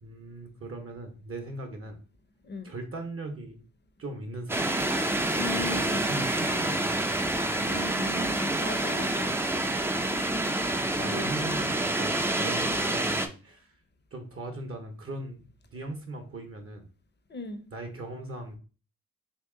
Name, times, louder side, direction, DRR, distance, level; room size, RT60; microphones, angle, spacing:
voice 1, 0.0-2.0 2.6-3.6 4.0-4.7 5.5-7.9 11.0-13.7 14.1-15.4 15.7-16.9 17.7-18.6, right 2 dB, 45° right, 5 dB, 0.7 m, -39 dB
sound 1, 4.5-13.3, right 1 dB, 10° right, 0.3 m, -28 dB
voice 2, 5.3-6.1 7.7-9.4 11.0-11.5 17.3-17.6, left 2 dB, 35° left, 9 dB, 0.6 m, -38 dB
3.0 x 2.8 x 3.6 m, 0.36 s
cardioid pair, 80°, 32 cm